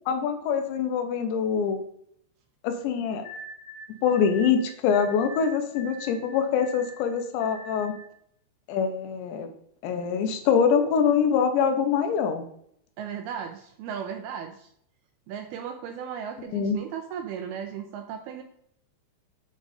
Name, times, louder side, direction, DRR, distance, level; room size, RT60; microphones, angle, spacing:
voice 1, 0.1-1.8 2.6-3.3 4.0-7.9 8.7-9.5 9.8-12.4 16.5-16.8, left 7 dB, 85° left, 6 dB, 3.2 m, -24 dB
sound 1, 3.2-8.1, equal, 55° left, 2.6 m, -43 dB
voice 2, 13.0-14.7 15.3-18.4, right 8 dB, 85° right, 5 dB, 2.3 m, -36 dB
10.5 x 3.9 x 5.0 m, 0.68 s
omnidirectional pair, 5.0 m